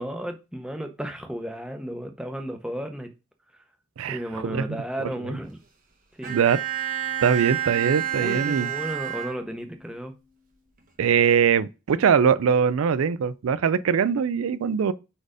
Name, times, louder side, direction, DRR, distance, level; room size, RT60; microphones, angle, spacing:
voice 1, 0.0-3.1 4.1-5.6 6.2-6.4 8.1-10.1, equal, 5° right, 0.7 m, -33 dB
voice 2, 4.0-4.7 5.3-5.4 6.3-6.6 7.2-8.7 11.0-14.9, right 7 dB, 75° right, 0.4 m, -22 dB
Bowed string instrument, 6.2-9.9, right 10 dB, 40° right, 1.0 m, -30 dB
4.8 x 4.4 x 4.9 m
head